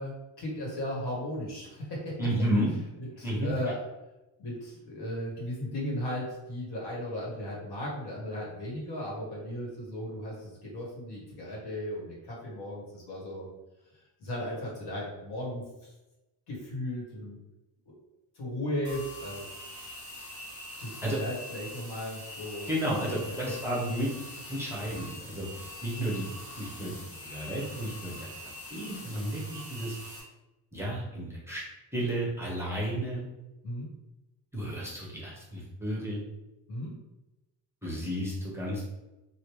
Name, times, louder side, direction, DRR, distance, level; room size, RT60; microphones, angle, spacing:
voice 1, 0.0-2.2 3.0-3.8 4.4-13.5 13.9-15.9 16.5-17.4 17.9-18.0 18.3-19.4 20.8-22.7 23.1-23.9 25.5-25.7 26.8-26.9 33.6-33.9 36.7-37.0, left 1 dB, 65° left, -4 dB, 1.5 m, -36 dB
voice 2, 2.2-2.7 3.2-3.5 21.0-21.2 22.7-24.1 24.5-25.5 25.8-26.2 26.6-26.9 27.2-28.2 28.7-29.9 30.7-31.6 31.9-33.2 34.5-36.2 37.8-38.9, right 1 dB, 5° right, -6 dB, 0.8 m, -32 dB
sound 1, 18.8-30.2, left 1 dB, 45° left, 1.2 m, -44 dB
3.3 x 2.5 x 3.1 m, 1.0 s
cardioid pair, 125°, 42 cm